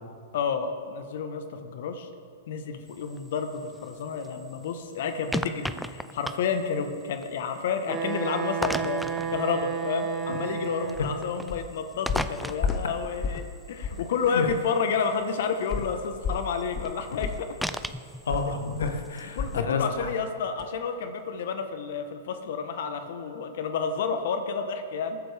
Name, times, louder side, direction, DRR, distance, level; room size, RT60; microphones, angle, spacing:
voice 1, 0.3-2.1 2.5-17.5 19.3-25.2, left 6 dB, 65° left, 7 dB, 1.2 m, -30 dB
sound 1, 2.9-19.6, equal, ahead, 0.4 m, -39 dB
Wind instrument woodwind instrument, 7.9-11.3, right 7 dB, 20° right, 1.5 m, -32 dB
sound 2, 10.9-11.1 11.5-11.7 12.1-13.5 13.8-14.1 14.5-14.6 15.7-19.7 20.0-20.2 20.6-20.7, left 5 dB, 25° left, 0.7 m, -33 dB
voice 2, 18.2-20.1, left 4 dB, 80° left, 6 dB, 1.4 m, -30 dB
20.5 x 9.9 x 3.5 m, 2.2 s
hypercardioid pair, 120°, 0 cm